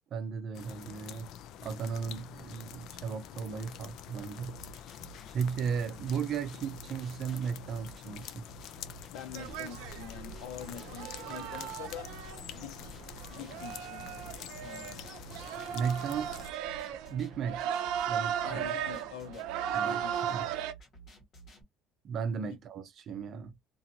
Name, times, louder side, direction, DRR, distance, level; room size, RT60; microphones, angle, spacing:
voice 1, 0.1-1.3 1.6-4.6 5.3-8.4 15.7-16.5 17.1-17.6 18.1-18.6 19.7-20.5 22.0-23.6, right 6 dB, 40° right, 0.6 m, -35 dB
sound 1, 0.5-16.5, left 10 dB, 60° left, 0.4 m, -47 dB
sound 2, 4.5-21.6, right 4 dB, 40° left, 1.4 m, -53 dB
voice 2, 9.1-12.2 12.5-15.1 18.4-19.5 19.8-20.2 22.5-22.6, left 9 dB, 85° left, 1.0 m, -45 dB
sound 3, 9.3-20.7, right 9 dB, 80° right, 0.5 m, -37 dB
2.7 x 2.6 x 2.8 m
cardioid pair, 165°, 0 cm